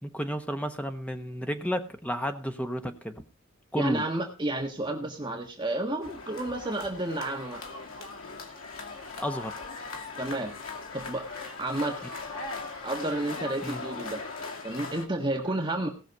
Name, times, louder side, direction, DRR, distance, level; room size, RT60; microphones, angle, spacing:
voice 1, 0.0-3.2 3.7-4.0 9.2-9.6 13.6-13.8, equal, 5° left, 7 dB, 1.2 m, -32 dB
voice 2, 3.7-7.6 10.1-10.5 10.9-11.3 11.6-12.0 12.8-14.2 14.6-15.9, right 2 dB, 20° right, 2 dB, 1.5 m, -31 dB
sound 1, 6.0-15.1, left 3 dB, 85° left, 2.3 m, -39 dB
18.0 x 6.3 x 5.3 m, 0.33 s
head